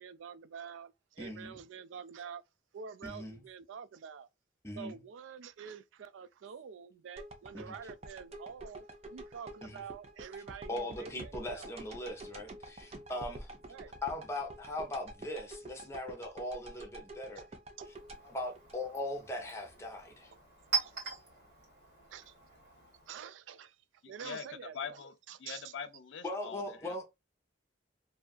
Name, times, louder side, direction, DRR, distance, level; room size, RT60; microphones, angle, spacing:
voice 1, 0.0-2.4 2.7-4.3 4.8-11.7 13.7-13.9 17.4-17.5 17.8-17.9 20.8-21.2 22.1-22.3 23.1-23.8 24.1-24.8 25.3-25.6, right 7 dB, 90° right, 0.3 m, -47 dB
voice 2, 1.2-1.6 3.0-3.4 4.6-5.0 7.5-7.7 9.6-9.8 10.7-13.5 14.0-17.5 18.2-20.3 26.2-27.0, left 1 dB, 15° left, 0.7 m, -40 dB
sound 1, 7.2-19.3 19.8-19.9, right 1 dB, 35° right, 0.5 m, -48 dB
Chink clink, 17.8-23.3, right 5 dB, 55° right, 1.7 m, -41 dB
voice 3, 24.0-27.0, left 6 dB, 80° left, 0.4 m, -44 dB
2.7 x 2.4 x 2.2 m
head